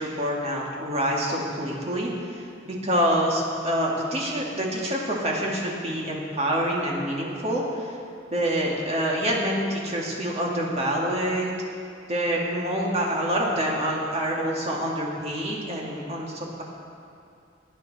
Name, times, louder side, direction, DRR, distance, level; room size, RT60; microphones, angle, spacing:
voice 1, 0.0-8.0 8.3-11.5 12.1-16.6, equal, 35° right, -2 dB, 2.1 m, -26 dB
19.0 x 9.1 x 4.1 m, 2.6 s
head